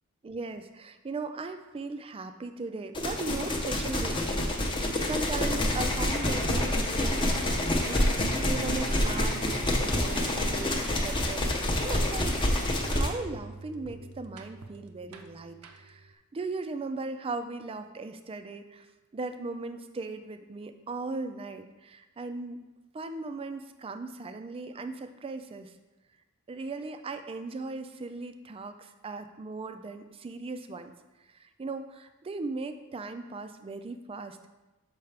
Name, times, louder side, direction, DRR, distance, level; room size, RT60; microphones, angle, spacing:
voice 1, 0.2-12.3 12.8-18.9 19.1-22.6 22.9-25.7 26.5-30.9 31.4-34.4, right 3 dB, 25° right, 8 dB, 0.3 m, -38 dB
sound 1, 2.9-13.1, left 1 dB, 25° left, 0.6 m, -27 dB
sound 2, 8.0-16.1, right 3 dB, 75° right, 0.6 m, -45 dB
6.7 x 4.7 x 3.3 m, 1.1 s
head